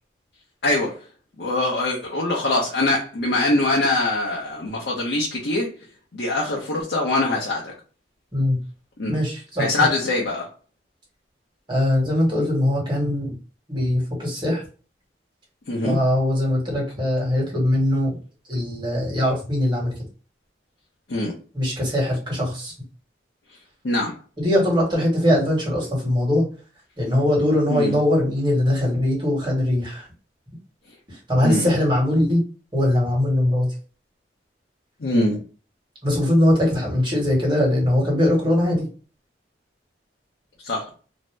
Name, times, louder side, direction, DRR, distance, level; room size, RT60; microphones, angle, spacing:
voice 1, 0.6-1.0 1.4-5.7 6.1-7.7 9.0-9.2 9.6-10.5 15.7-16.0 21.1-21.3 23.8-24.1 27.7-28.0 31.4-31.7 35.0-35.4 40.6-40.8, left 2 dB, 65° left, -2 dB, 0.6 m, -23 dB
voice 2, 9.1-9.7 11.7-13.3 13.7-14.6 15.8-18.1 18.5-19.9 21.5-22.7 24.4-26.5 27.0-30.1 31.1-32.4 32.7-33.7 36.0-38.9, left 1 dB, 25° right, -3 dB, 1.3 m, -21 dB
2.6 x 2.0 x 3.2 m, 0.37 s
head